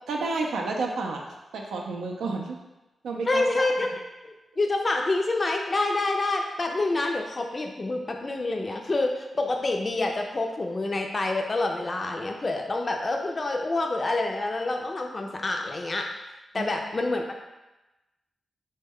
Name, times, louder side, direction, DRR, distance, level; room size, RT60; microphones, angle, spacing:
voice 1, 0.1-1.2 1.5-2.5 3.0-3.7 16.5-16.7 17.0-17.1, right 3 dB, 85° right, 1 dB, 0.4 m, -30 dB
voice 2, 3.2-3.9 4.2-16.1 16.5-17.4, left 2 dB, 40° left, 2 dB, 0.4 m, -27 dB
3.1 x 2.1 x 3.5 m, 1.0 s
supercardioid pair, 45°, 0 cm